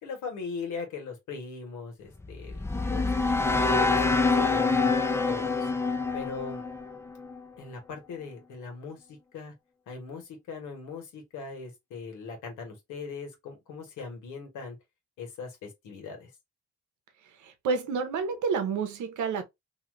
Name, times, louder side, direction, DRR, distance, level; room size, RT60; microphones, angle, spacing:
voice 1, 0.0-4.9 5.3-5.7 6.1-6.6 7.6-9.5 9.9-14.8 15.2-16.3, left 5 dB, 90° left, 1.4 m, -40 dB
sound 1, 2.2-7.4, left 3 dB, 10° left, 0.4 m, -26 dB
voice 2, 17.4-19.4, right 5 dB, 75° right, 0.9 m, -29 dB
2.9 x 2.4 x 3.1 m
cardioid pair, 90°, 30 cm